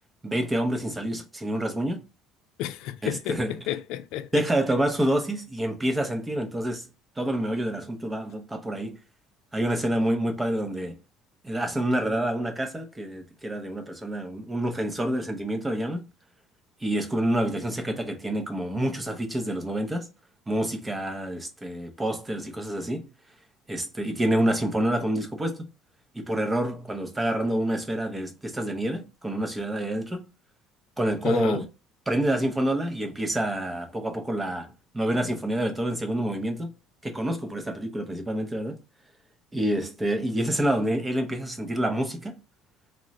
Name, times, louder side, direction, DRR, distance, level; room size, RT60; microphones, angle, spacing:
voice 1, 0.2-2.0 3.0-3.5 4.3-6.9 7.2-9.0 9.5-11.0 11.4-16.1 16.8-20.1 20.5-23.1 23.7-25.7 26.1-30.3 31.0-31.7 32.1-36.7 37.0-38.8 39.5-42.4, right 1 dB, 10° right, 0.6 m, -27 dB
voice 2, 2.6-4.4 31.2-31.7, left 12 dB, 70° left, 0.3 m, -32 dB
3.6 x 2.1 x 4.0 m
cardioid pair, 160°, 0 cm